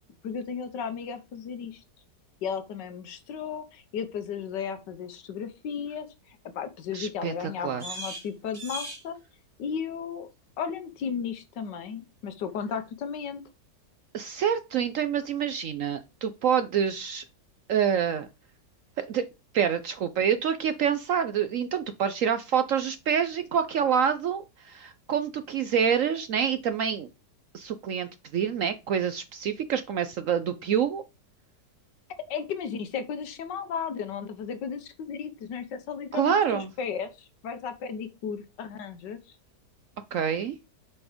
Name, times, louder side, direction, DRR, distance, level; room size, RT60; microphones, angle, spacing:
voice 1, 0.2-1.8 2.4-9.2 9.6-10.3 10.6-13.4 32.3-39.4, left 7 dB, 85° left, 10 dB, 1.6 m, -35 dB
voice 2, 6.9-7.3 7.6-7.8 14.1-17.2 17.7-18.3 19.0-19.3 19.5-27.1 27.5-31.0 36.1-36.7 40.1-40.5, right 8 dB, 65° right, 11 dB, 0.8 m, -27 dB
sound 1, 7.3-27.1, right 1 dB, 20° right, 2.3 m, -50 dB
6.9 x 4.4 x 5.0 m, 0.27 s
omnidirectional pair, 1.9 m